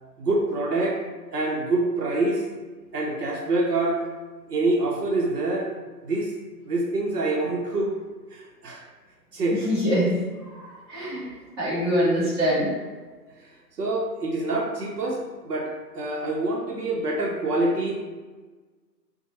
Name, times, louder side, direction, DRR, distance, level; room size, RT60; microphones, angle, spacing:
voice 1, 0.2-1.0 1.3-2.4 2.9-4.0 4.5-5.7 6.0-6.3 6.7-8.0 8.3-8.8 9.3-9.7 13.8-17.9, right 2 dB, 70° right, -1 dB, 0.7 m, -26 dB
voice 2, 9.6-10.1 10.9-11.2 11.6-12.7, equal, 15° right, -12 dB, 0.8 m, -23 dB
2.7 x 2.1 x 2.8 m, 1.3 s
figure-of-eight pair, 140°, 49 cm